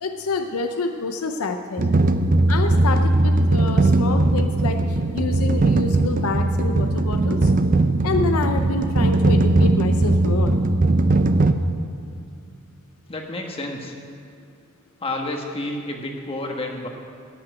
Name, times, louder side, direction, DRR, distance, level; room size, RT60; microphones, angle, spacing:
voice 1, 0.0-1.9 2.5-7.5 8.0-10.5, left 3 dB, 85° left, 6 dB, 0.6 m, -27 dB
sound 1, 1.8-11.5, right 2 dB, 40° right, 0.5 m, -19 dB
voice 2, 13.1-13.9 15.0-16.9, left 2 dB, 25° left, 2 dB, 1.3 m, -30 dB
14.0 x 5.8 x 9.4 m, 2.4 s
head